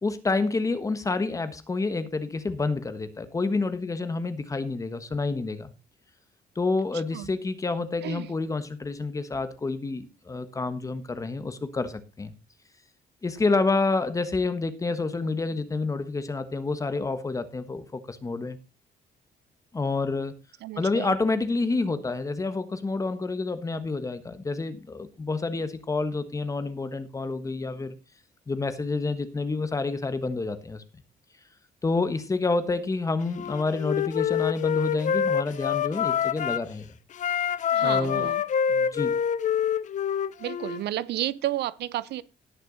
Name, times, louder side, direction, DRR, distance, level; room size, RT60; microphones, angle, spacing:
voice 1, 0.0-5.7 6.5-12.3 13.2-18.6 19.7-20.3 20.8-27.9 28.5-30.8 31.8-36.9 37.3-37.4 37.8-38.3 38.7-39.2, left 3 dB, 20° left, 1.3 m, -28 dB
voice 2, 20.6-21.2 37.7-38.4 40.4-42.2, right 13 dB, 80° right, 0.7 m, -31 dB
Wind instrument woodwind instrument, 33.3-36.7 37.1-40.8, left 8 dB, 45° left, 0.6 m, -26 dB
17.5 x 6.4 x 3.9 m
cardioid pair, 155°, 17 cm